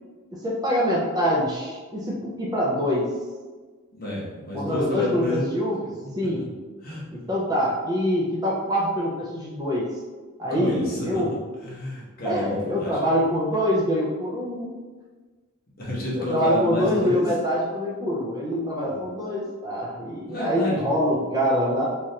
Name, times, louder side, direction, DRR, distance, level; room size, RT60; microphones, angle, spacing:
voice 1, 0.3-3.1 4.5-5.8 6.2-6.4 7.1-9.9 10.4-11.3 12.2-14.7 16.2-21.9, equal, 20° right, -4 dB, 0.4 m, -25 dB
voice 2, 3.9-5.5 5.9-6.1 6.4-6.5 6.8-7.0 10.5-11.2 11.6-13.0 15.8-17.3 18.8-19.0 20.2-21.0, left 1 dB, 45° left, -5 dB, 0.9 m, -30 dB
3.2 x 2.4 x 2.7 m, 1.3 s
head